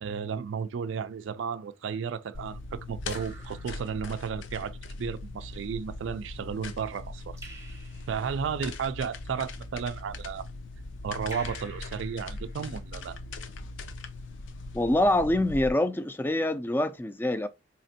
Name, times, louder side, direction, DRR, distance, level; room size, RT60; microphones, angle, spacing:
voice 1, 0.0-7.4 8.1-10.4 11.0-13.2, right 6 dB, 80° right, 0.3 m, -33 dB
Raindrop / Drip, 1.3-1.8 3.1-4.4 7.4-8.5 11.3-13.0, right 1 dB, 15° right, 0.7 m, -49 dB
sound 1, 2.3-15.7, left 2 dB, 80° left, 0.5 m, -40 dB
voice 2, 14.7-17.5, left 1 dB, 10° left, 0.3 m, -25 dB
4.2 x 2.9 x 2.7 m
head